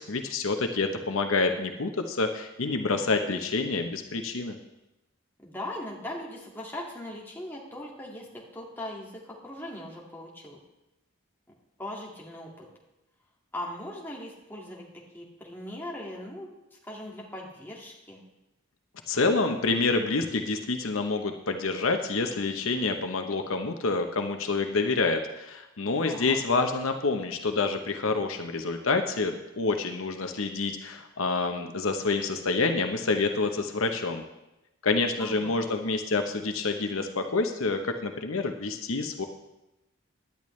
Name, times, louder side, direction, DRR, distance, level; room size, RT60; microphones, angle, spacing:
voice 1, 0.0-4.6 19.1-34.2 34.8-39.3, left 3 dB, 70° left, 5 dB, 0.9 m, -27 dB
voice 2, 5.4-10.6 11.8-12.7 13.5-14.9 15.1-16.5 16.8-18.2 26.1-26.4 35.2-35.8, left 1 dB, 10° left, -3 dB, 2.0 m, -39 dB
17.0 x 11.0 x 3.2 m, 0.93 s
head